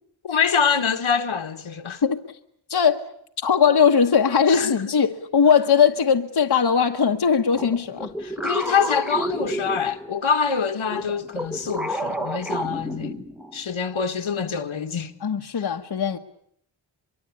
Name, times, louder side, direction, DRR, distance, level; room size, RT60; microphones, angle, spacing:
voice 1, 0.2-2.0 4.5-4.8 8.2-13.2 13.5-15.1, left 6 dB, 80° left, 1.7 m, -25 dB
voice 2, 2.7-3.1 3.4-8.1 8.4-8.5 15.2-16.2, left 6 dB, 50° left, 1.2 m, -19 dB
sound 1, 7.5-10.3 10.9-13.6, right 1 dB, ahead, 1.1 m, -30 dB
24.0 x 23.5 x 8.7 m
wide cardioid pair, 120°, 48 cm